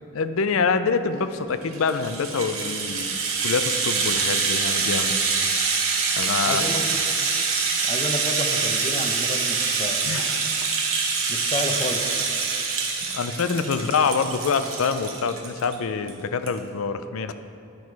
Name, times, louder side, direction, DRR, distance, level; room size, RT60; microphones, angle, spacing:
voice 1, 0.1-3.2 3.4-5.2 6.2-6.7 10.0-10.7 13.1-17.3, left 5 dB, 85° left, 11 dB, 0.5 m, -25 dB
Rattle (instrument), 1.6-15.7 16.1-16.2 16.5-16.6, right 5 dB, 85° right, 1.1 m, -25 dB
voice 2, 6.5-6.9 7.8-10.0 11.3-12.3, left 1 dB, 25° left, 4 dB, 0.6 m, -30 dB
10.5 x 6.2 x 4.6 m, 2.6 s
head